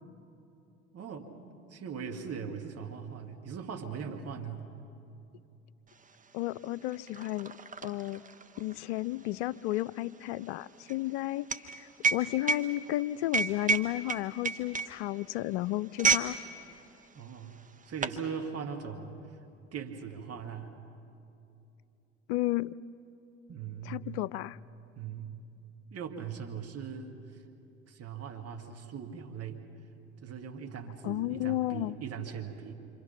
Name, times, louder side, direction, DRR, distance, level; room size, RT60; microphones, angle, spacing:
voice 1, 0.9-1.3 1.7-4.6 17.1-17.6 17.9-19.2 19.7-20.7 23.5-24.2 24.9-25.4 25.9-27.4 27.9-29.6 30.2-32.7, right 7 dB, 45° right, 3 dB, 2.3 m, -40 dB
sound 1, 6.0-6.1 6.4-16.4 16.7-16.9 17.6-18.2, right 4 dB, 20° right, 1.2 m, -31 dB
voice 2, 6.3-7.5 7.8-8.2 8.6-16.4 22.3-22.8 23.9-24.6 31.0-32.0, left 16 dB, 70° left, 19 dB, 0.5 m, -33 dB
27.5 x 26.0 x 5.9 m, 2.8 s
hypercardioid pair, 65°, 35 cm